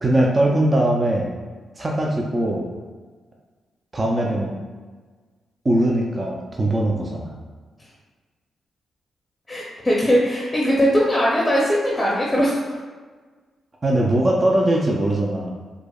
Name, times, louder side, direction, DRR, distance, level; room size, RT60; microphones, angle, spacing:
voice 1, 0.0-1.3 1.8-2.7 3.9-4.5 5.6-7.4 13.8-15.5, right 1 dB, 30° right, -2 dB, 0.4 m, -20 dB
voice 2, 9.5-12.8, equal, 20° left, -5 dB, 0.6 m, -20 dB
4.7 x 2.0 x 2.3 m, 1.4 s
cardioid pair, 70°, 0 cm